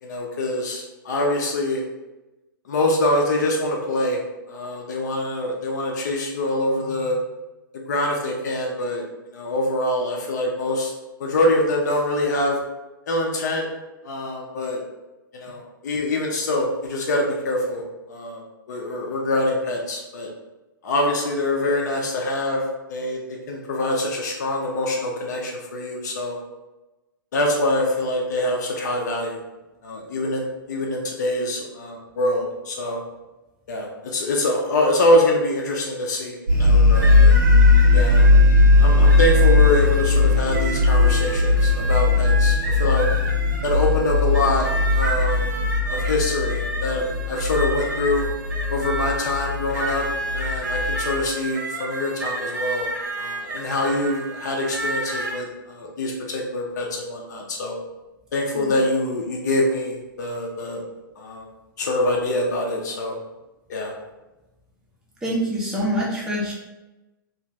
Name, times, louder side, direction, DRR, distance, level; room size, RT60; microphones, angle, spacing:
voice 1, 0.0-1.8 2.7-4.2 4.5-7.2 7.7-9.0 9.3-10.9 11.2-12.6 13.1-13.7 14.0-14.8 15.3-18.4 18.7-20.3 20.8-22.6 22.9-23.2 23.5-26.4 27.3-29.4 29.8-33.0 33.7-37.4 37.9-38.3 38.8-43.1 43.6-44.7 44.9-45.5 45.9-48.2 48.7-50.1 50.3-52.9 53.2-57.8 58.3-60.8 61.2-61.5 61.8-63.2 63.7-63.9, left 1 dB, 50° left, 0 dB, 0.5 m, -24 dB
sound 1, 36.5-51.2, left 3 dB, 85° right, 1.0 m, -18 dB
sound 2, 36.9-55.4, right 2 dB, 60° right, 0.8 m, -31 dB
voice 2, 65.2-66.5, equal, 5° right, -6 dB, 0.5 m, -25 dB
2.5 x 2.4 x 3.1 m, 1.1 s
figure-of-eight pair, 110°, 12 cm